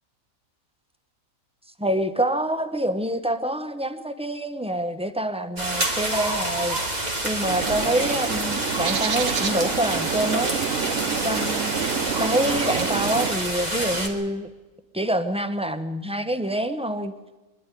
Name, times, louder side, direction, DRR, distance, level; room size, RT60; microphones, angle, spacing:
voice 1, 1.8-6.8 7.2-10.6 11.2-11.7 12.2-14.5 14.9-17.1, right 1 dB, 5° right, 10 dB, 0.7 m, -26 dB
sound 1, 5.6-14.1, right 1 dB, 30° right, 2.2 m, -28 dB
Bird, 7.4-13.4, right 7 dB, 65° right, 1.3 m, -28 dB
23.5 x 11.5 x 9.8 m, 1.2 s
omnidirectional pair, 1.5 m